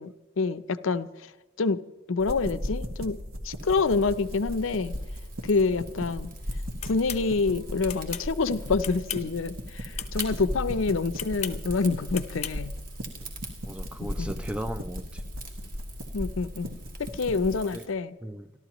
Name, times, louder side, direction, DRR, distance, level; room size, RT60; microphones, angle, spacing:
voice 1, 0.0-3.2 3.4-4.9 5.4-6.3 6.8-12.7 14.0-14.3 16.1-18.1, left 4 dB, 70° left, 13 dB, 0.6 m, -27 dB
sound 1, 2.2-17.6, equal, 85° right, 1.7 m, -37 dB
Rain / Fire, 3.6-17.9, right 3 dB, 40° right, 2.2 m, -48 dB
sound 2, 6.8-7.2 7.9-8.3 8.8-9.3 9.9-10.3 11.1-11.6 12.1-12.6, left 10 dB, 30° left, 0.7 m, -35 dB
voice 2, 13.7-15.2 17.7-17.9 18.2-18.5, right 1 dB, 5° right, 10 dB, 0.4 m, -37 dB
27.0 x 12.0 x 3.0 m, 1.1 s
head